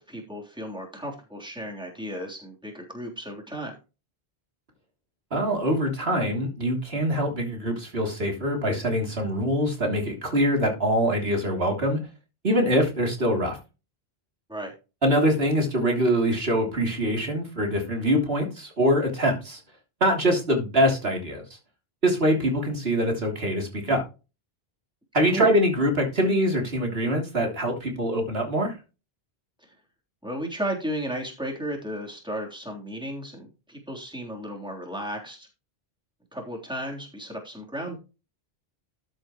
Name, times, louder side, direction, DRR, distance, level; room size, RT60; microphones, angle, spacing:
voice 1, 0.0-3.7 14.5-14.7 25.3-25.5 29.6-29.7 30.2-35.5 36.3-38.0, right 1 dB, 5° right, -1 dB, 3.4 m, -34 dB
voice 2, 5.3-12.0 12.4-13.6 15.0-19.6 20.0-21.4 22.0-24.0 25.1-28.8, equal, 75° right, 2 dB, 3.3 m, -24 dB
13.0 x 7.9 x 3.1 m, 0.30 s
omnidirectional pair, 1.0 m